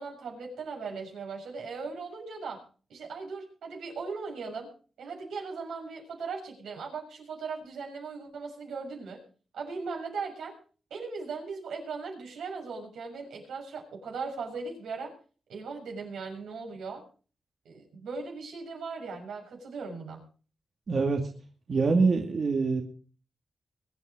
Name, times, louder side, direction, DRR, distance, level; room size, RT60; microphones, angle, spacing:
voice 1, 0.0-2.6 2.9-4.7 5.0-9.2 9.5-10.5 10.9-15.1 15.5-17.0 17.6-20.3, right 4 dB, 90° right, 0 dB, 6.6 m, -38 dB
voice 2, 20.9-21.3 21.7-22.8, right 4 dB, 60° right, 2 dB, 2.5 m, -24 dB
23.0 x 9.6 x 5.0 m, 0.40 s
cardioid pair, 55°, 0 cm